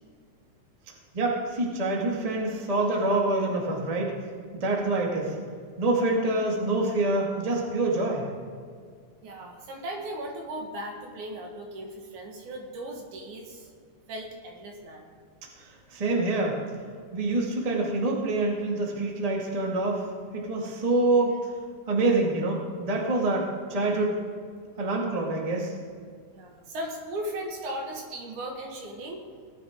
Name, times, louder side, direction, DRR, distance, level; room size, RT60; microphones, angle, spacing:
voice 1, 1.1-4.1 4.5-5.4 5.8-8.3 15.6-16.6 17.1-20.1 20.3-21.5 21.9-24.2 24.8-25.7, right 2 dB, 15° right, -1 dB, 1.5 m, -26 dB
voice 2, 9.2-13.7 14.1-15.1 24.8-24.9 26.3-29.2, right 1 dB, 70° right, 1 dB, 3.1 m, -37 dB
18.0 x 11.5 x 3.7 m, 2.1 s
omnidirectional pair, 3.6 m